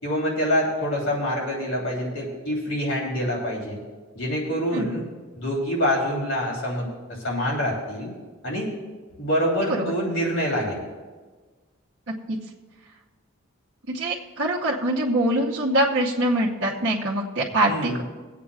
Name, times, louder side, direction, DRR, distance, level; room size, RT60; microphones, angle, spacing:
voice 1, 0.0-3.8 4.1-5.0 5.4-6.9 7.2-8.1 8.4-8.7 9.2-10.8 17.7-18.0, equal, 70° left, -3 dB, 3.3 m, -26 dB
voice 2, 13.9-18.0, right 1 dB, 55° right, -6 dB, 1.0 m, -24 dB
24.0 x 8.4 x 2.4 m, 1.4 s
head